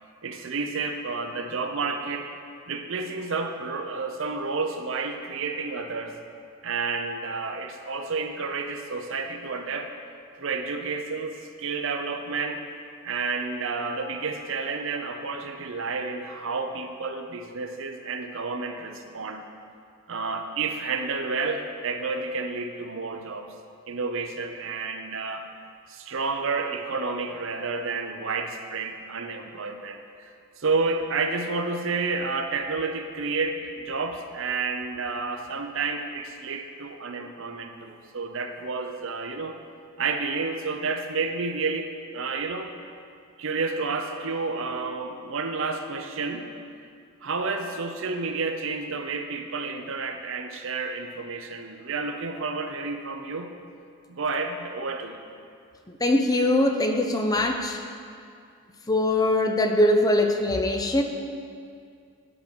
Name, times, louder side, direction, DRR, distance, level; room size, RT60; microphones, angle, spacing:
voice 1, 0.2-2.3 2.7-6.1 6.6-9.9 10.4-12.6 13.0-19.5 20.1-23.5 23.9-25.5 25.9-30.3 30.6-39.6 40.0-42.7 43.4-46.5 47.2-53.5 54.1-55.2, right 4 dB, 65° right, 6 dB, 0.7 m, -30 dB
voice 2, 56.0-57.8 58.9-61.0, left 1 dB, 20° left, 4 dB, 0.6 m, -22 dB
11.0 x 6.4 x 5.2 m, 2.3 s
head